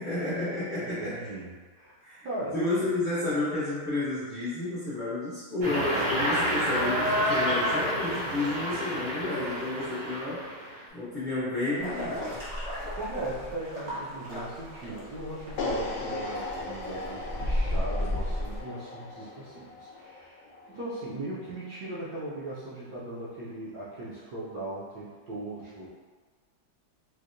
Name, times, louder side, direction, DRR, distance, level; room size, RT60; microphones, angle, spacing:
voice 1, 0.0-1.2 2.0-2.3 2.5-10.4 10.9-12.4, left 2 dB, 55° left, -12 dB, 0.5 m, -31 dB
voice 2, 0.8-1.5 1.7-2.0 2.2-2.6 12.9-25.9, right 2 dB, 70° right, -8 dB, 0.9 m, -38 dB
sound 1, 5.6-10.8, equal, 90° right, 2.4 m, -29 dB
sound 2, 11.8-18.6, left 1 dB, 50° right, 0.4 m, -34 dB
sound 3, 15.6-21.7, left 3 dB, 75° left, 1.3 m, -38 dB
4.6 x 2.1 x 2.5 m, 1.4 s
omnidirectional pair, 2.4 m